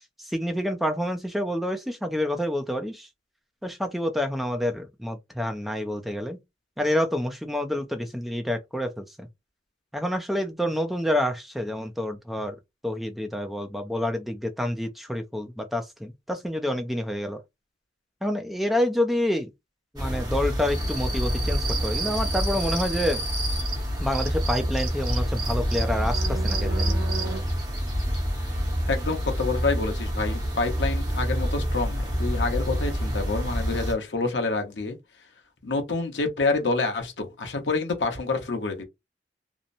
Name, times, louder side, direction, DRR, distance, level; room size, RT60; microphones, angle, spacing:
voice 1, 0.2-3.1 3.6-6.4 6.8-9.3 9.9-12.6 12.8-17.4 18.2-19.5 19.9-23.2 24.0-26.9, left 1 dB, ahead, 0.3 m, -28 dB
sound 1, 20.0-33.9, equal, 20° right, 0.9 m, -27 dB
sound 2, 21.6-22.9 23.3-27.4, right 5 dB, 55° right, 0.8 m, -34 dB
voice 2, 28.9-35.0 35.6-38.8, left 3 dB, 85° left, 0.8 m, -27 dB
2.7 x 2.0 x 2.5 m
head